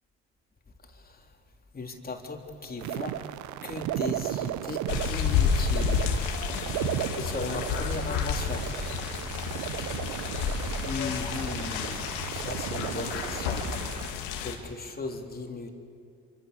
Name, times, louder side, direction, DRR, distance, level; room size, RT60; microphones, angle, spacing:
voice 1, 0.9-1.3 1.7-3.4 3.6-6.1 7.1-8.7 10.8-13.7 14.4-15.7, left 3 dB, 30° left, 2 dB, 3.7 m, -37 dB
sound 1, 2.8-14.1, right 13 dB, 75° right, 0.8 m, -35 dB
sound 2, 4.9-14.6, left 6 dB, 85° left, 2.3 m, -30 dB
27.5 x 25.0 x 7.0 m, 2.3 s
supercardioid pair, 65°, 29 cm